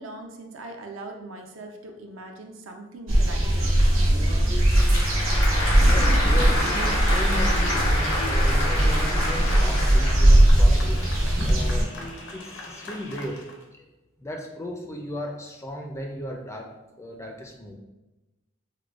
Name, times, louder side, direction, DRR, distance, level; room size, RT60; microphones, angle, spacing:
voice 1, 0.0-3.7, right 2 dB, 70° right, 3 dB, 0.5 m, -40 dB
sound 1, 3.1-11.8, right 1 dB, 90° right, 1.1 m, -20 dB
Applause / Crowd, 4.3-10.4, left 1 dB, 85° left, 1.1 m, -29 dB
voice 2, 5.6-11.0 11.4-13.4 13.7-13.9 14.2-16.7 17.0-17.7, equal, 15° left, 2 dB, 0.3 m, -36 dB
sound 2, 7.7-13.6, left 2 dB, 65° left, 0.6 m, -40 dB
4.6 x 2.2 x 2.4 m, 1.0 s
head